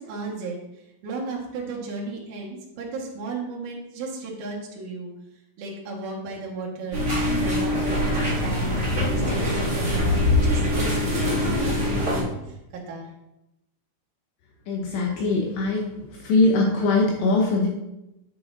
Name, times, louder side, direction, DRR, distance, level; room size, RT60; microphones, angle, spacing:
voice 1, 0.0-5.1 5.6-7.0 7.4-12.6 12.9-13.0, right 3 dB, 60° right, -3 dB, 2.3 m, -35 dB
sound 1, 6.9-12.2, left 1 dB, 30° right, 1.1 m, -23 dB
voice 2, 14.7-16.0 16.2-17.7, left 3 dB, 75° left, -1 dB, 2.7 m, -21 dB
8.4 x 8.2 x 2.7 m, 0.90 s
omnidirectional pair, 5.7 m